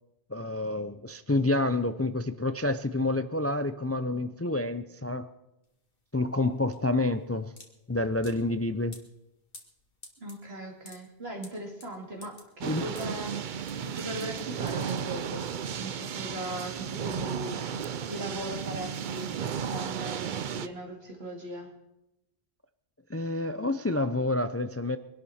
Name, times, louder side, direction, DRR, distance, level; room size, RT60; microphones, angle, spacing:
voice 1, 0.3-5.3 6.1-7.5 7.9-9.0 12.6-12.9 23.1-25.0, left 2 dB, 20° left, 0.4 m, -28 dB
sound 1, 5.6-15.6, left 2 dB, 60° left, 2.2 m, -53 dB
voice 2, 10.2-17.6 18.1-21.7, right 1 dB, 75° right, 2.9 m, -39 dB
sound 2, 12.6-20.7, right 7 dB, 55° right, 0.7 m, -34 dB
23.5 x 12.0 x 4.3 m
omnidirectional pair, 1.0 m